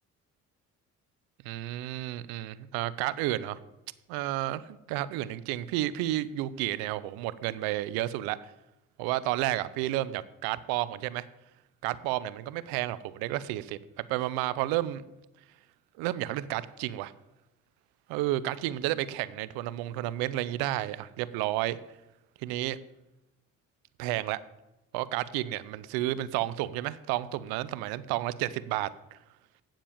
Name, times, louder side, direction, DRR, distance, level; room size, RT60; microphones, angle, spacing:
voice 1, 1.4-3.6 4.1-8.5 9.0-11.3 11.8-15.1 16.0-17.1 18.1-21.8 22.4-22.8 24.0-24.4 24.9-29.2, right 15 dB, 90° right, 17 dB, 0.6 m, -31 dB
8.8 x 7.5 x 7.2 m, 0.96 s
supercardioid pair, 65°, 35 cm